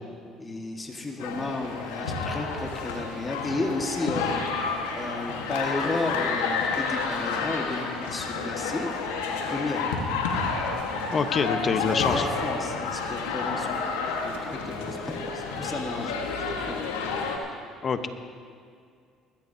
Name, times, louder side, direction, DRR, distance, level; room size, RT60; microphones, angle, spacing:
voice 1, 0.4-4.4 4.9-8.9 9.3-9.8 11.8-16.2 16.5-16.9, left 2 dB, 25° left, 2 dB, 1.7 m, -33 dB
sound 1, 1.2-17.4, left 4 dB, 85° left, 1.5 m, -30 dB
voice 2, 11.1-12.3 17.8-18.1, left 5 dB, 45° left, 9 dB, 1.0 m, -25 dB
21.0 x 14.5 x 2.8 m, 2.2 s
hypercardioid pair, 65°, 0 cm